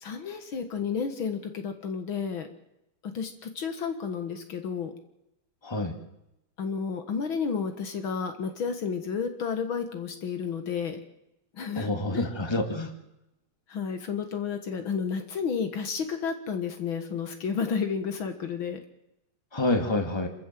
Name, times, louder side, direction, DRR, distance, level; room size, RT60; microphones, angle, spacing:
voice 1, 0.0-2.5 3.1-4.9 6.6-11.0 11.5-12.2 13.7-18.8, left 6 dB, 65° left, 7 dB, 2.3 m, -31 dB
voice 2, 11.8-12.9 19.5-20.3, left 2 dB, 10° left, 5 dB, 2.3 m, -27 dB
27.5 x 14.0 x 7.6 m, 0.88 s
omnidirectional pair, 2.4 m